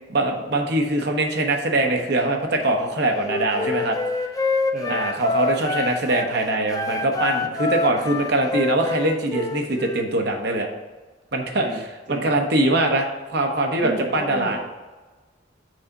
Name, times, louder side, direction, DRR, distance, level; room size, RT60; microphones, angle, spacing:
voice 1, 0.1-4.0 4.9-10.7 11.3-11.6 12.1-14.6, right 2 dB, 60° right, 2 dB, 1.0 m, -22 dB
Wind instrument woodwind instrument, 3.2-6.3 6.7-10.1, left 3 dB, 20° left, 0.5 m, -26 dB
voice 2, 4.7-5.2 11.6-12.3 13.8-14.6, right 2 dB, 45° right, -1 dB, 0.7 m, -33 dB
6.3 x 4.1 x 5.9 m, 1.2 s
head